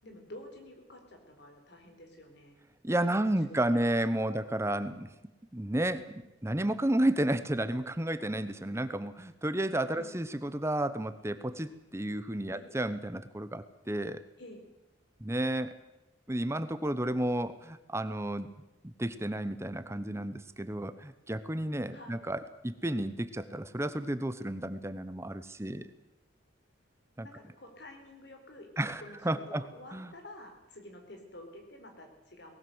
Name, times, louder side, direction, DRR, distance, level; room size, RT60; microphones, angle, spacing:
voice 1, 0.0-2.6 3.0-3.3 3.7-4.4 9.9-10.1 12.5-12.7 14.4-14.6 21.9-22.2 27.2-29.2 29.5-32.6, left 1 dB, 60° left, 4 dB, 4.2 m, -50 dB
voice 2, 2.8-5.1 5.5-6.1 6.4-14.2 15.2-15.8 16.3-18.5 18.8-25.9 27.2-27.3 28.8-29.6 29.9-30.1, right 1 dB, 15° right, 12 dB, 0.9 m, -32 dB
19.0 x 17.5 x 8.0 m, 0.99 s
head